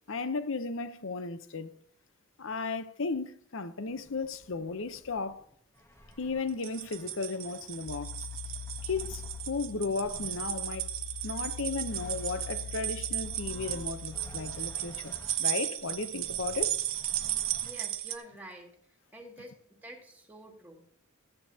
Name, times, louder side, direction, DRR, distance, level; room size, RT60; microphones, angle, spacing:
voice 1, 0.1-1.7 2.4-5.5 6.2-8.3 8.8-10.9 11.2-16.8, left 4 dB, 60° left, 0.8 m, -35 dB
sound 1, 3.9-12.7 13.2-18.0, equal, 10° left, 1.0 m, -53 dB
sound 2, 6.5-18.1, right 12 dB, 60° right, 0.9 m, -35 dB
sound 3, 7.9-14.8, left 9 dB, 85° left, 0.4 m, -44 dB
voice 2, 17.6-18.7 19.1-19.5 19.8-20.8, right 1 dB, 10° right, 2.2 m, -47 dB
14.5 x 10.0 x 2.8 m
head